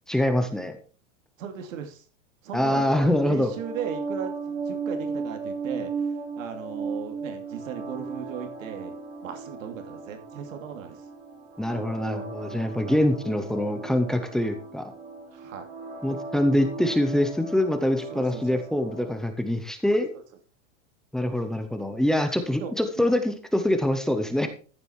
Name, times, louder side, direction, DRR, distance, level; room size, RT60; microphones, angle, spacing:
voice 1, 0.1-0.8 2.5-3.5 11.6-14.9 16.0-20.1 21.1-24.5, left 1 dB, ahead, 8 dB, 0.5 m, -24 dB
voice 2, 1.4-2.0 2.4-8.9 9.2-11.0 15.3-15.7 18.1-18.6 22.6-23.2, right 8 dB, 90° right, 5 dB, 2.8 m, -37 dB
sound 1, 3.4-19.3, right 4 dB, 25° right, 2.8 m, -36 dB
14.0 x 6.8 x 4.5 m, 0.37 s
supercardioid pair, 170°, 38 cm